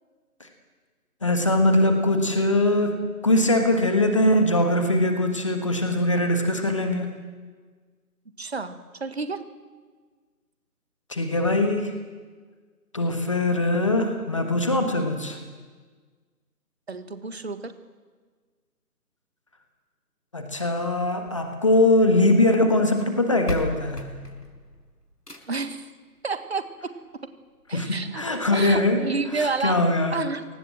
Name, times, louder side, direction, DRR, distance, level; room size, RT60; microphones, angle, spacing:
voice 1, 1.2-7.1 11.1-11.9 12.9-15.4 20.3-24.0 27.7-29.0 29.4-30.2, left 1 dB, 20° left, 5 dB, 1.4 m, -22 dB
voice 2, 8.4-9.4 16.9-17.7 25.4-25.9 26.2-26.7 27.7-28.2 28.5-29.8 30.1-30.5, right 4 dB, 40° right, 10 dB, 1.7 m, -30 dB
sound 1, 21.1-22.3 23.1-23.2 23.5-25.7 27.1-27.2 27.7-27.8 28.0-28.1 28.7-28.8, left 1 dB, 90° left, 5.1 m, -36 dB
29.0 x 19.0 x 7.7 m, 1.5 s
figure-of-eight pair, 155°, 47 cm